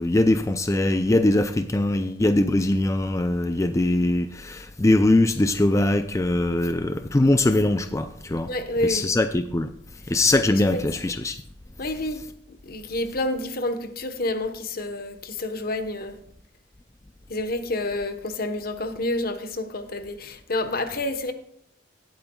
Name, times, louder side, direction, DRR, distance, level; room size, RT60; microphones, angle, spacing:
voice 1, 0.0-8.5 8.8-9.7 10.1-11.4, left 2 dB, 15° left, 0.4 m, -22 dB
voice 2, 8.5-9.2 10.5-10.8 11.8-16.2 17.3-21.3, left 2 dB, 55° left, 1.1 m, -29 dB
18.0 x 8.9 x 2.3 m
head